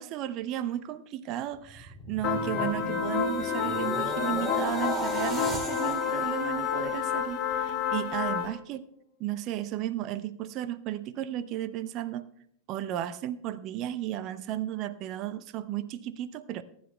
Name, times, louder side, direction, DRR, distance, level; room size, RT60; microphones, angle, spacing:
voice 1, 0.0-8.8 9.2-12.2 12.7-16.6, right 12 dB, 40° right, 14 dB, 0.6 m, -34 dB
sound 1, 1.5-7.8 8.2-8.5, equal, 10° right, 2.1 m, -37 dB
sound 2, 2.2-8.5, left 8 dB, 35° left, 1.4 m, -30 dB
23.0 x 10.5 x 2.3 m, 0.74 s
figure-of-eight pair, 90°, 0 cm